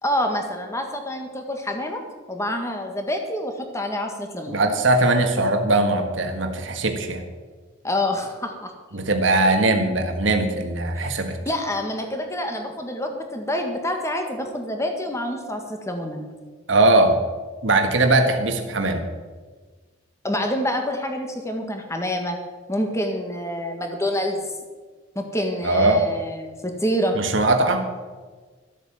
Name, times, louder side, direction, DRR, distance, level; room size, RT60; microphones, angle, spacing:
voice 1, 0.0-2.0 2.3-4.6 7.8-8.7 11.0-11.1 11.4-16.2 20.2-22.4 22.7-24.6 25.1-27.2, left 1 dB, 15° left, 4 dB, 1.8 m, -27 dB
voice 2, 4.5-7.2 8.9-11.4 16.7-17.2 17.6-19.0 25.6-26.0 27.1-27.8, right 2 dB, 75° right, 5 dB, 1.6 m, -20 dB
13.5 x 8.6 x 7.3 m, 1.4 s
head